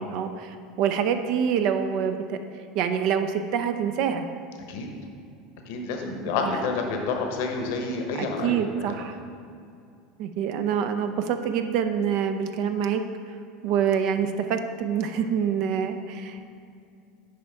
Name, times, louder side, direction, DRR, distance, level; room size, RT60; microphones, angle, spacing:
voice 1, 0.0-2.4 2.7-4.3 6.0-6.6 8.2-9.1 10.2-13.0 13.6-16.5, right 8 dB, 60° right, 7 dB, 0.5 m, -26 dB
voice 2, 5.6-8.7, left 4 dB, 70° left, 2 dB, 1.0 m, -29 dB
8.6 x 5.1 x 3.5 m, 2.4 s
hypercardioid pair, 85°, 0 cm